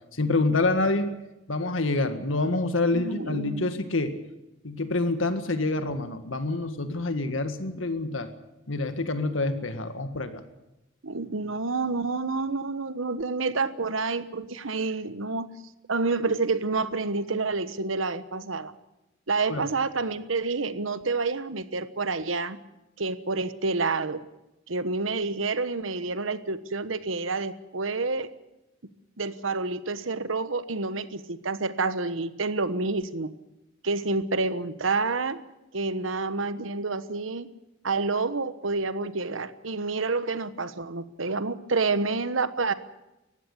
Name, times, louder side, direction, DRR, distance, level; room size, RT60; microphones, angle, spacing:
voice 1, 0.1-1.1 1.5-4.2 4.6-8.3 8.7-10.4 19.5-19.7, left 2 dB, 75° left, 9 dB, 1.9 m, -27 dB
voice 2, 2.9-3.7 11.0-15.5 15.9-18.7 19.3-22.6 23.0-24.2 24.7-28.3 29.2-33.3 33.8-35.4 35.7-37.5 37.8-42.7, right 3 dB, 80° right, 13 dB, 1.2 m, -28 dB
19.5 x 15.5 x 9.9 m, 0.95 s
head